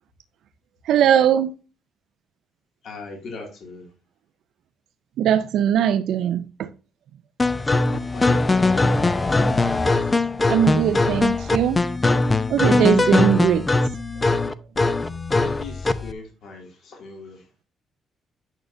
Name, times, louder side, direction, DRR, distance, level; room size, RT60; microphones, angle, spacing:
voice 1, 0.8-1.5 5.2-6.7 10.5-11.8 12.5-13.7, right 9 dB, 75° right, 0.5 m, -20 dB
voice 2, 2.8-3.9 7.9-8.9 15.4-17.5, left 3 dB, 60° left, 2.4 m, -39 dB
sound 1, 7.4-16.1, left 3 dB, 20° left, 0.5 m, -21 dB
9.0 x 6.4 x 2.6 m
cardioid pair, 130°, 0 cm